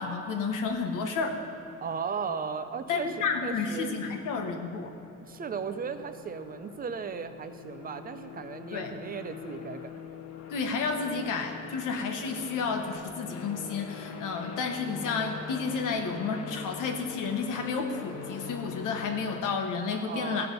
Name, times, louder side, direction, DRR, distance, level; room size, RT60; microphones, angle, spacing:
voice 1, 0.0-1.4 2.9-4.9 8.7-8.9 10.5-20.5, left 5 dB, 75° left, 4 dB, 1.3 m, -31 dB
sound 1, 0.7-19.4, left 6 dB, 50° left, 0.9 m, -44 dB
voice 2, 1.8-3.1 3.4-3.9 5.2-9.9 20.1-20.5, right 6 dB, 30° right, 9 dB, 0.5 m, -36 dB
16.0 x 6.0 x 5.3 m, 2.7 s
cardioid pair, 160°, 32 cm